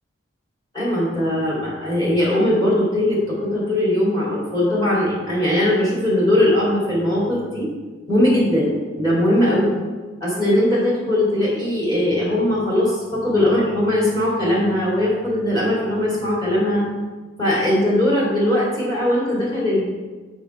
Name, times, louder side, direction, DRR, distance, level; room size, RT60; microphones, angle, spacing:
voice 1, 0.7-7.7 8.1-9.7 10.2-16.8 17.4-19.8, left 1 dB, 20° left, -7 dB, 2.4 m, -20 dB
7.1 x 5.4 x 4.6 m, 1.4 s
head